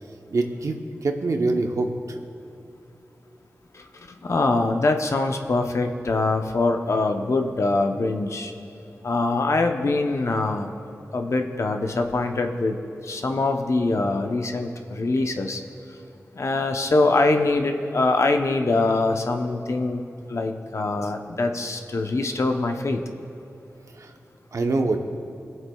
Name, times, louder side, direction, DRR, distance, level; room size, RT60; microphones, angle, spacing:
voice 1, 0.3-2.2 24.0-24.1 24.5-25.0, right 3 dB, 75° right, 4 dB, 0.8 m, -25 dB
voice 2, 3.7-8.5 9.0-10.7 11.1-12.8 13.0-15.6 16.3-20.0 20.3-23.0, left 2 dB, 60° left, 5 dB, 0.7 m, -23 dB
23.0 x 7.8 x 2.3 m, 3.0 s
cardioid pair, 50°, 5 cm